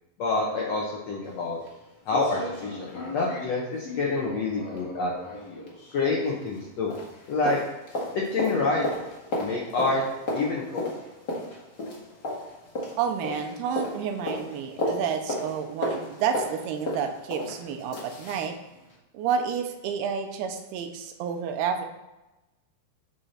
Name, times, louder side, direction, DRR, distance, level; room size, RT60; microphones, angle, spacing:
voice 1, 0.2-1.6 2.1-5.1 5.9-6.9 7.3-7.6 8.1-8.8 9.3-10.0 10.3-10.9, left 3 dB, 75° left, -3 dB, 1.5 m, -27 dB
sound 1, 1.2-1.3 1.7-1.8 2.1-6.7 6.9-18.5 18.9-19.0, left 1 dB, 45° left, 1.4 m, -34 dB
voice 2, 13.0-18.6 19.1-21.9, right 7 dB, 90° right, 6 dB, 2.7 m, -30 dB
8.3 x 5.7 x 4.3 m, 1.0 s
omnidirectional pair, 4.5 m